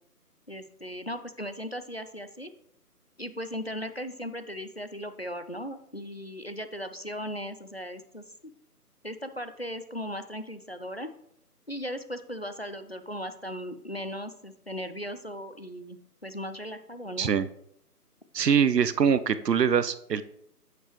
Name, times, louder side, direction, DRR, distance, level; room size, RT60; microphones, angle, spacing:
voice 1, 0.5-2.5 3.2-8.5 9.0-11.1 11.7-17.3, equal, 45° left, 10 dB, 0.4 m, -37 dB
voice 2, 18.3-20.2, right 7 dB, 85° right, 14 dB, 0.8 m, -23 dB
8.0 x 6.8 x 3.0 m, 0.73 s
figure-of-eight pair, 165°, 48 cm